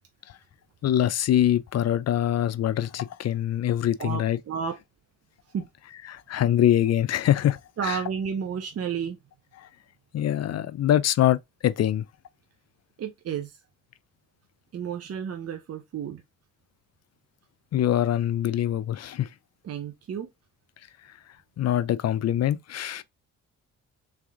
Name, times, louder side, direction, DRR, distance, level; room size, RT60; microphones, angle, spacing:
voice 1, 0.8-4.4 6.1-8.0 9.6-9.7 10.1-11.4 11.6-12.0 17.7-19.3 21.6-23.0, left 11 dB, 55° left, 0.5 m, -24 dB
voice 2, 4.0-4.8 5.5-5.7 7.8-9.2 13.0-13.6 14.7-16.2 19.6-20.3, right 7 dB, 50° right, 0.7 m, -31 dB
3.5 x 3.4 x 3.5 m
cardioid pair, 70°, 31 cm